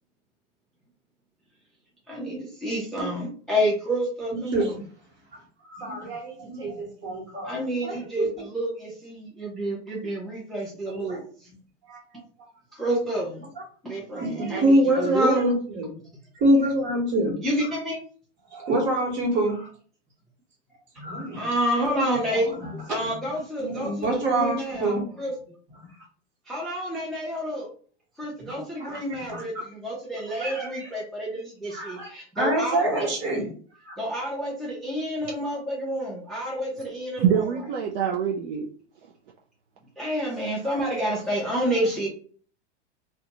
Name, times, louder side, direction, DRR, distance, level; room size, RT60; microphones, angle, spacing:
voice 1, 2.1-4.6 7.4-11.2 12.7-13.4 13.8-15.4 17.4-18.0 21.4-22.5 22.9-25.3 26.5-27.7 28.2-29.5 29.8-33.1 33.3-33.4 34.0-37.3 40.0-42.1, right 1 dB, ahead, -4 dB, 0.5 m, -29 dB
voice 2, 4.3-4.8 5.3-5.4 5.7-8.3 10.9-11.2 11.9-12.0 12.4-12.5 13.6-13.7 14.1-15.9 16.3-17.3 18.5-19.7 21.0-21.5 22.3-25.2 25.7-25.9 28.4-29.6 30.4-30.9 31.7-32.1 32.4-33.5 33.8-34.0, right 1 dB, 30° right, 0 dB, 1.2 m, -26 dB
voice 3, 37.2-38.7, right 8 dB, 50° right, 0 dB, 0.5 m, -25 dB
2.5 x 2.2 x 2.9 m, 0.43 s
hypercardioid pair, 120°, 36 cm